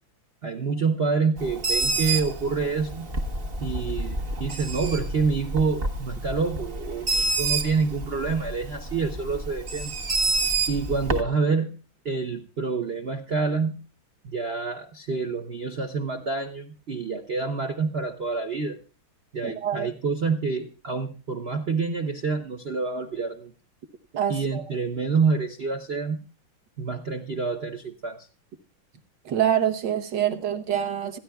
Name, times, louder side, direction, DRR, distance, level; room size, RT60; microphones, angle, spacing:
voice 1, 0.4-3.1 3.6-9.9 10.7-11.7 12.0-13.7 14.2-18.8 19.3-23.5 24.3-26.2 26.8-28.3, right 4 dB, 90° right, 6 dB, 0.5 m, -27 dB
Bird, 1.4-11.2, right 2 dB, 40° right, 0.8 m, -29 dB
voice 2, 19.4-19.9 24.1-24.6 29.3-31.2, right 10 dB, 60° right, 7 dB, 1.6 m, -26 dB
26.5 x 10.0 x 2.3 m, 0.32 s
omnidirectional pair, 2.3 m